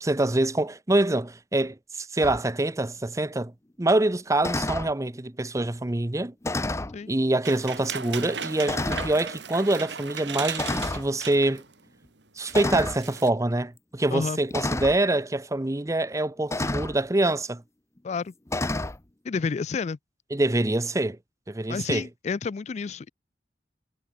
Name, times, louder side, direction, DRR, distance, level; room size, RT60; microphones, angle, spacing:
voice 1, 0.0-3.5 3.8-6.3 7.1-11.6 12.4-17.6 20.3-21.2 21.5-22.1, right 2 dB, 20° right, 0.7 m, -25 dB
sound 1, 2.2-2.4 4.4-4.9 6.4-7.0 7.8-7.9 8.7-9.2 10.6-11.1 12.5-13.0 14.5-15.0 16.5-17.0 18.5-19.0, left 2 dB, 15° left, 0.8 m, -29 dB
sound 2, 7.4-11.7 12.0-12.1 12.4-13.3, right 6 dB, 85° right, 4.4 m, -36 dB
voice 2, 19.2-20.0 21.7-23.1, left 5 dB, 40° left, 0.3 m, -30 dB
head